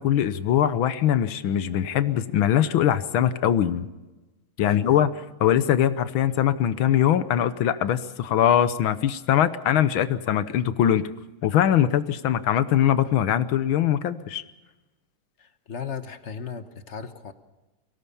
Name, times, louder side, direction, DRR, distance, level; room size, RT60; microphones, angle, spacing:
voice 1, 0.0-3.9 4.6-5.1 5.4-11.0 11.4-14.4, left 10 dB, 75° left, 13 dB, 1.7 m, -22 dB
voice 2, 4.6-5.1 15.4-17.3, left 6 dB, 40° left, 10 dB, 1.2 m, -36 dB
23.5 x 17.5 x 7.0 m, 1.1 s
omnidirectional pair, 2.3 m